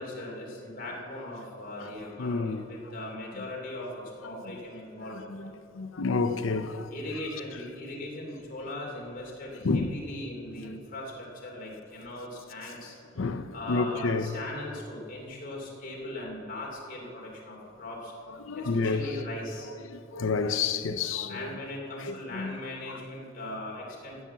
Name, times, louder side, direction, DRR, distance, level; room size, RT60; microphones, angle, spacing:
voice 1, 0.0-3.9 4.2-5.4 6.9-12.9 13.5-18.1 18.5-19.7 21.3-24.2, left 1 dB, 45° left, 3.0 m, -39 dB
voice 2, 1.8-2.6 3.4-3.5 4.5-4.6 5.0-6.9 9.6-10.0 13.2-14.4 18.3-19.1 19.9-21.6 22.0-22.6 22.9-23.0, left 4 dB, 80° left, 0.6 m, -30 dB
16.5 x 7.4 x 7.2 m
head